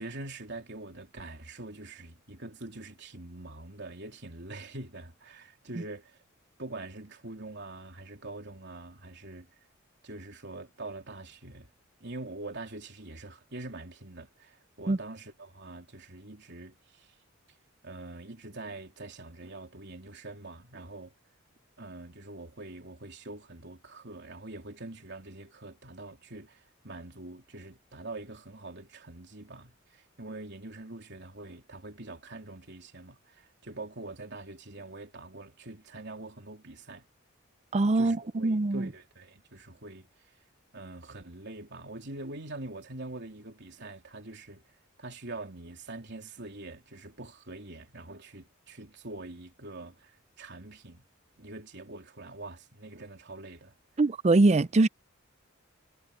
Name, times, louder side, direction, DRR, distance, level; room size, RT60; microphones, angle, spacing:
voice 1, 0.0-6.2 6.6-9.5 10.0-11.7 12.0-17.1 17.8-21.1 21.8-37.0 37.9-40.1 40.7-44.6 45.0-51.0 51.4-53.7, right 2 dB, 60° right, 3.5 m, -44 dB
voice 2, 37.7-38.9 54.0-54.9, right 2 dB, 35° right, 0.5 m, -23 dB
head